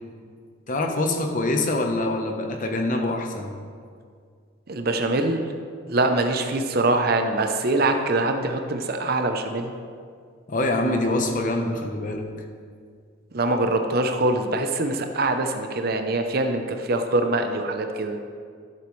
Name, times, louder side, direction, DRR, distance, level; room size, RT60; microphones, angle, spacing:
voice 1, 0.7-3.5 10.5-12.3, left 2 dB, 40° left, 3 dB, 0.9 m, -25 dB
voice 2, 4.7-5.5 5.9-9.7 13.3-18.2, right 2 dB, 50° right, 6 dB, 0.7 m, -23 dB
13.5 x 7.5 x 3.2 m, 2.1 s
head